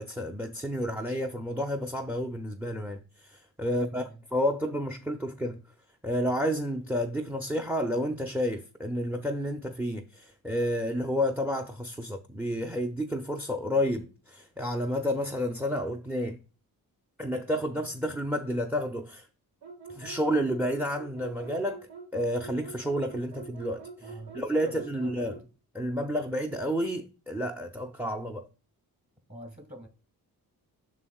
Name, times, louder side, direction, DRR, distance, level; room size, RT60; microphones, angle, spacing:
voice 1, 0.0-4.0 4.3-5.6 6.0-16.4 17.2-19.3 19.9-25.4 25.7-28.5, equal, 5° right, 0.4 m, -30 dB
voice 2, 3.7-4.2 24.0-25.2 29.3-29.9, right 1 dB, 25° right, 1.5 m, -46 dB
sound 1, 19.6-25.5, right 5 dB, 80° right, 1.5 m, -45 dB
7.3 x 6.4 x 2.3 m
wide cardioid pair, 115°, 37 cm